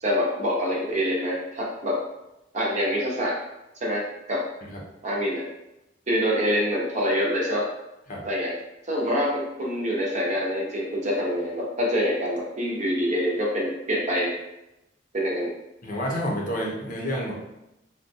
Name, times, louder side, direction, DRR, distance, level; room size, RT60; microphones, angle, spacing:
voice 1, 0.0-2.0 2.5-3.4 3.8-4.4 5.0-5.4 6.1-7.7 8.2-8.5 8.9-14.3 15.1-15.5, equal, 40° right, -3 dB, 0.8 m, -25 dB
voice 2, 15.8-17.4, equal, 50° left, -2 dB, 0.7 m, -29 dB
3.6 x 2.3 x 2.6 m, 0.88 s
head